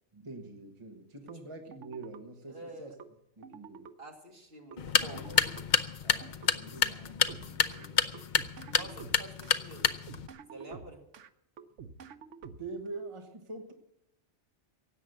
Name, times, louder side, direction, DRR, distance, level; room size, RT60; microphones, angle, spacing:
voice 1, 0.1-3.0 3.4-3.9 6.0-8.2 12.6-13.7, right 3 dB, 25° right, 3 dB, 1.4 m, -45 dB
sound 1, 1.3-1.4 1.7-2.2 3.0-3.1 3.4-3.9 4.7-4.8 5.1-5.6 6.2-6.5 7.3-7.9 8.1-9.6 9.8-11.3 11.6-12.9, right 6 dB, 85° right, 1.1 m, -48 dB
voice 2, 2.5-3.0 4.0-5.4 8.8-10.0 10.5-11.0, right 2 dB, 55° right, 2 dB, 2.3 m, -47 dB
sound 2, 4.8-10.3, left 6 dB, 50° left, 0.7 m, -29 dB
16.5 x 8.4 x 7.9 m, 0.78 s
omnidirectional pair, 1.2 m